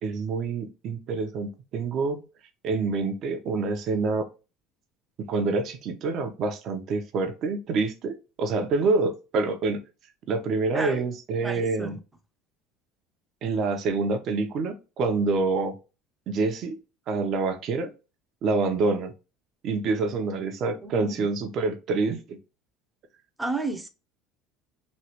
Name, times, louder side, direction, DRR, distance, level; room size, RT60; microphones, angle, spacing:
voice 1, 0.0-2.2 2.6-4.3 5.3-9.8 10.3-12.0 13.4-15.7 16.3-16.8 17.1-17.9 18.4-19.1 19.6-22.4, right 3 dB, 45° right, 0.7 m, -27 dB
voice 2, 10.7-11.1 11.4-12.0 20.8-21.3 23.4-23.9, right 2 dB, 5° right, 0.6 m, -32 dB
3.1 x 2.4 x 2.8 m
cardioid pair, 140°, 0 cm